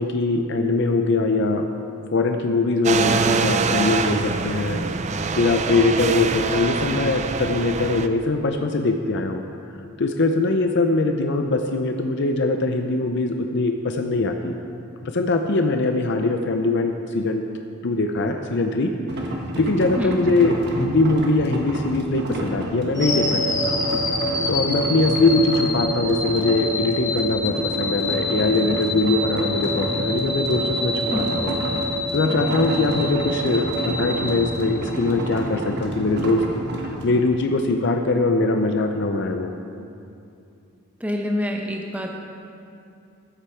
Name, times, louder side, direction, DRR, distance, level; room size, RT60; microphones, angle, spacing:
voice 1, 0.0-1.7 2.1-4.8 5.3-9.4 10.0-14.6 15.0-17.4 17.8-18.9 19.6-23.7 24.5-31.5 32.1-36.4 37.0-39.5, left 2 dB, 60° left, 5 dB, 0.6 m, -22 dB
sound 1, 2.8-8.1, right 4 dB, 35° right, 0.4 m, -24 dB
sound 2, 19.1-37.2, right 1 dB, 55° right, 1.3 m, -30 dB
sound 3, 22.9-35.1, left 1 dB, 15° left, 1.2 m, -26 dB
voice 2, 41.0-42.1, equal, 5° right, 1 dB, 0.8 m, -26 dB
14.5 x 8.3 x 4.4 m, 2.6 s
head